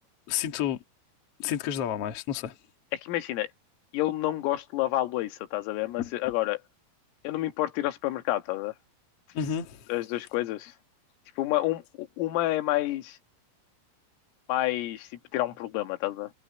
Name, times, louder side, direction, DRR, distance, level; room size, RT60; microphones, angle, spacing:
voice 1, 0.3-0.8 1.4-2.6 6.0-6.1 9.3-9.9, left 9 dB, 60° left, 1.6 m, -30 dB
voice 2, 2.9-3.5 3.9-6.6 7.2-8.7 9.9-10.7 11.4-13.2 14.5-16.3, left 16 dB, 80° left, 4.3 m, -29 dB
omnidirectional pair, 5.9 m